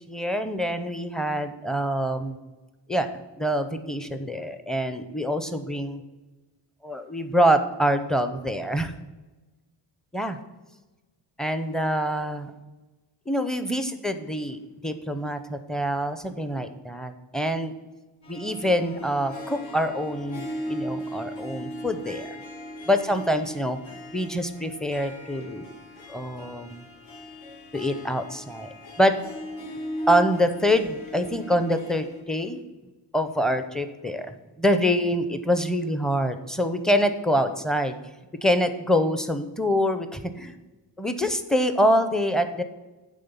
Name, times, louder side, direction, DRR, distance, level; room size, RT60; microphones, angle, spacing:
voice 1, 0.1-2.4 2.9-6.0 6.8-8.9 10.1-10.4 11.4-12.5 13.3-17.7 18.3-22.4 22.9-23.8 24.1-25.7 26.1-26.8 27.7-28.7 29.0-29.2 30.1-32.6 33.1-38.0 38.4-40.6 41.0-42.6, equal, ahead, 9 dB, 0.6 m, -25 dB
Harp, 18.2-32.2, equal, 75° left, 2.0 m, -38 dB
9.3 x 3.8 x 6.9 m, 1.2 s
cardioid pair, 115°, 46 cm